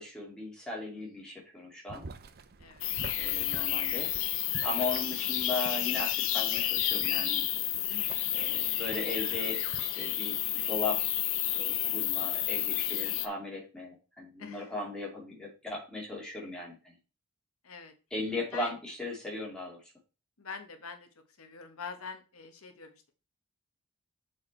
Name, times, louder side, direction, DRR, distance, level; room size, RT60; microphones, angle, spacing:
voice 1, 0.0-2.1 3.2-4.2 4.6-7.4 8.3-11.0 11.5-17.0 18.1-19.8, left 2 dB, 5° left, -3 dB, 2.5 m, -37 dB
Boiling, 1.9-9.8, right 4 dB, 45° right, 0.6 m, -49 dB
voice 2, 2.6-2.9 7.8-8.5 14.4-14.7 17.6-17.9 18.5-18.7 20.4-21.1 21.4-23.1, left 5 dB, 90° left, 7 dB, 1.1 m, -45 dB
sound 1, 2.8-13.3, left 13 dB, 70° left, 0.6 m, -30 dB
6.4 x 4.6 x 4.4 m, 0.34 s
head